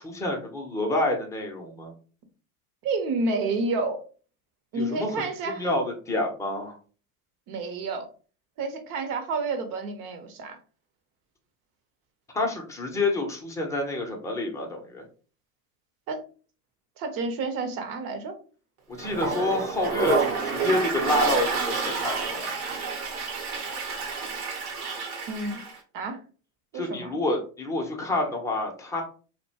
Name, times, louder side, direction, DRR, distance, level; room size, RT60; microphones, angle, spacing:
voice 1, 0.0-1.9 4.7-6.7 12.3-15.0 18.9-22.5 26.7-29.0, left 2 dB, 5° left, 1 dB, 0.6 m, -28 dB
voice 2, 2.8-4.0 4.7-5.7 7.5-8.1 8.6-10.6 16.1-16.2 17.0-18.4 25.3-25.6 25.9-26.2 26.7-27.1, right 3 dB, 50° right, 6 dB, 0.8 m, -30 dB
Toilet flush, 19.0-25.8, right 5 dB, 75° right, 1.0 m, -29 dB
2.6 x 2.2 x 2.7 m, 0.38 s
hypercardioid pair, 100°, 44 cm